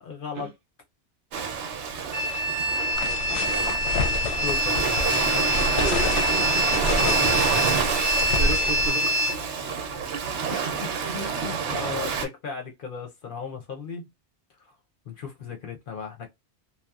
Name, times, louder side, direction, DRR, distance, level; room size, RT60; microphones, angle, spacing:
voice 1, 0.1-0.5 4.2-5.6 10.5-14.1 14.6-14.7 15.1-16.3, left 5 dB, 55° left, 0.7 m, -36 dB
Ocean, 1.3-12.3, right 6 dB, 85° right, 0.9 m, -28 dB
sound 1, 2.1-9.3, left 1 dB, 25° right, 0.4 m, -26 dB
voice 2, 2.7-3.7 5.8-6.8 8.4-9.1 10.1-10.5 11.9-12.0, right 7 dB, 60° right, 0.7 m, -35 dB
sound 2, 2.9-8.9, left 2 dB, 85° left, 0.9 m, -29 dB
2.8 x 2.0 x 2.3 m
omnidirectional pair, 1.2 m